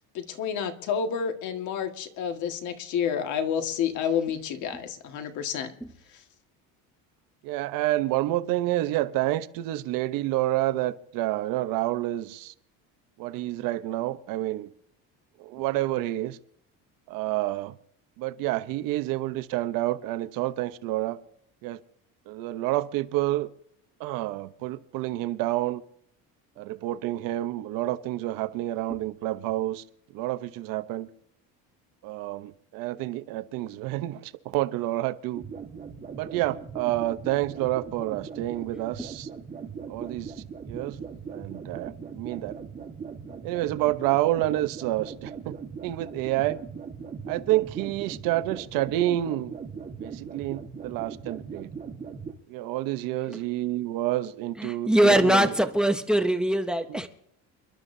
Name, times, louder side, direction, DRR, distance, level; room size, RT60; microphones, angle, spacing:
voice 1, 0.1-5.7, left 7 dB, 55° left, 1.8 m, -29 dB
voice 2, 7.4-12.5 13.2-14.7 15.4-16.4 17.1-17.7 18.2-21.2 21.6-21.8 22.3-23.5 24.0-25.8 26.6-29.8 30.1-31.1 32.0-35.4 36.2-39.3 39.9-40.3 40.7-41.0 41.3-42.5 43.4-45.5 45.8-46.6 47.3-49.6 50.0-51.7 52.5-55.5, right 15 dB, 70° right, 1.0 m, -28 dB
sound 1, 35.3-52.3, right 6 dB, 25° right, 1.5 m, -40 dB
voice 3, 54.6-57.1, right 1 dB, ahead, 0.7 m, -22 dB
28.5 x 12.0 x 2.7 m
cardioid pair, 170°, 36 cm